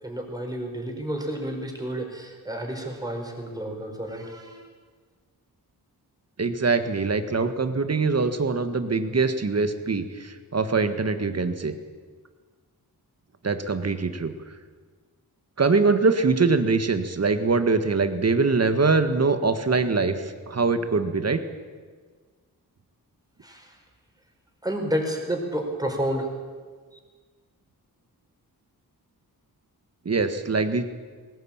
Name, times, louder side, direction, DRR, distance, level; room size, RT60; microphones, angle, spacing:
voice 1, 0.0-4.6 23.4-23.8 24.6-26.3, right 1 dB, 10° right, 2 dB, 4.9 m, -30 dB
voice 2, 6.4-11.7 13.4-14.3 15.6-21.4 30.1-30.9, right 4 dB, 40° right, 9 dB, 1.7 m, -23 dB
19.5 x 18.5 x 8.9 m, 1.5 s
wide cardioid pair, 105°, 37 cm